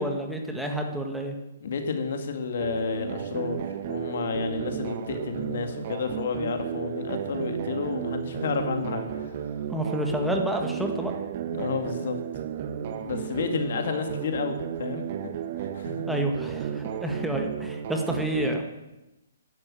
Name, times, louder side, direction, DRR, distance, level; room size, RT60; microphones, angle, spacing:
voice 1, 0.0-1.4 9.7-11.1 16.1-18.6, right 1 dB, ahead, 2 dB, 1.7 m, -29 dB
voice 2, 1.6-9.3 11.5-12.2 12.8-16.1, left 5 dB, 55° left, 5 dB, 2.1 m, -31 dB
sound 1, 2.6-18.6, right 9 dB, 45° right, 1.3 m, -33 dB
12.0 x 11.0 x 7.6 m, 0.99 s
figure-of-eight pair, 130°, 0 cm